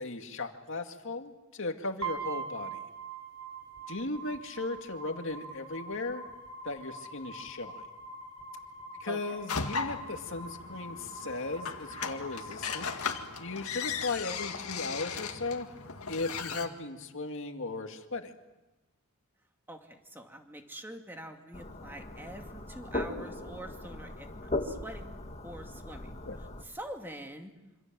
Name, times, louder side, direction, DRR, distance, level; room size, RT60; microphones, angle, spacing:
voice 1, 0.0-2.8 3.9-6.3 6.6-7.8 9.0-12.9 13.4-15.7 16.1-18.3 26.2-26.4, left 3 dB, 60° left, 5 dB, 2.2 m, -37 dB
sound 1, 2.0-14.0, right 4 dB, 85° right, 5.4 m, -44 dB
voice 2, 9.1-9.4 19.7-25.1 25.4-26.1 26.6-27.5, right 1 dB, 10° right, 4 dB, 2.4 m, -45 dB
sound 2, 9.5-16.7, left 6 dB, 80° left, 2.0 m, -37 dB
sound 3, 21.5-26.6, left 2 dB, 30° left, 2.0 m, -38 dB
26.5 x 26.0 x 7.6 m, 1.0 s
head